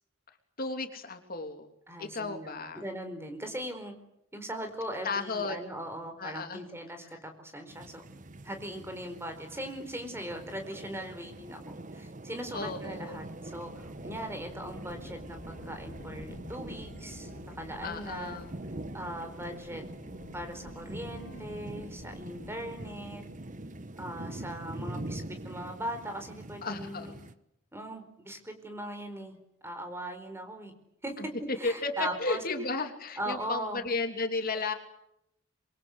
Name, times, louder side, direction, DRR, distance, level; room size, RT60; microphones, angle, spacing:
voice 1, 0.6-1.7 2.0-2.8 5.0-5.6 6.2-6.6 12.5-13.2 17.8-18.6 26.6-27.2 31.2-34.7, left 3 dB, 50° left, 5 dB, 3.0 m, -34 dB
voice 2, 1.9-3.9 4.3-8.0 8.4-17.3 17.6-18.4 18.9-19.8 20.3-23.2 24.0-27.1 27.7-29.4 29.6-30.7 31.0-32.4 33.2-33.8, right 1 dB, 15° right, 6 dB, 4.7 m, -39 dB
sound 1, 7.7-27.3, right 1 dB, 40° right, 1.3 m, -44 dB
sound 2, 12.4-24.5, left 1 dB, 70° left, 2.6 m, -49 dB
26.5 x 23.5 x 8.1 m, 0.78 s
head